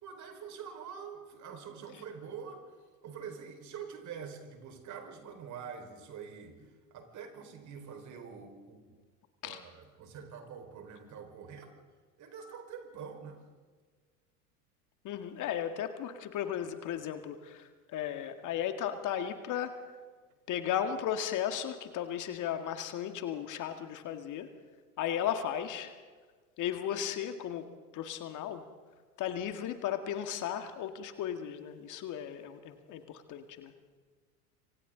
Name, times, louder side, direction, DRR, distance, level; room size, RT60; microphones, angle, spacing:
voice 1, 0.0-2.7 3.0-8.8 9.4-11.7 12.2-13.4, right 6 dB, 40° right, 4 dB, 5.0 m, -45 dB
voice 2, 15.0-19.9 20.5-24.5 25.0-25.9 26.6-27.7 27.9-28.7 29.2-33.7, left 9 dB, 40° left, 7 dB, 1.9 m, -35 dB
27.5 x 25.5 x 3.9 m, 1.5 s
hypercardioid pair, 85°, 45 cm